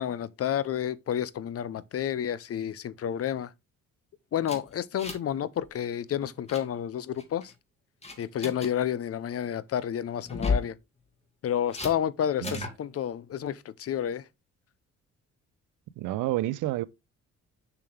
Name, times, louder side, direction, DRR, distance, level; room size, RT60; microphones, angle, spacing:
voice 1, 0.0-3.5 4.3-7.5 8.2-10.7 11.4-14.2, left 9 dB, 50° left, 0.7 m, -30 dB
sound 1, 4.4-5.4 5.6-5.8 6.2-6.6 7.2-7.5 8.0-8.7 10.2-10.7 11.7-11.9 12.4-12.8, left 4 dB, 20° left, 2.3 m, -32 dB
voice 2, 16.0-16.8, right 15 dB, 90° right, 0.6 m, -29 dB
6.8 x 6.0 x 3.3 m
cardioid pair, 90°, 30 cm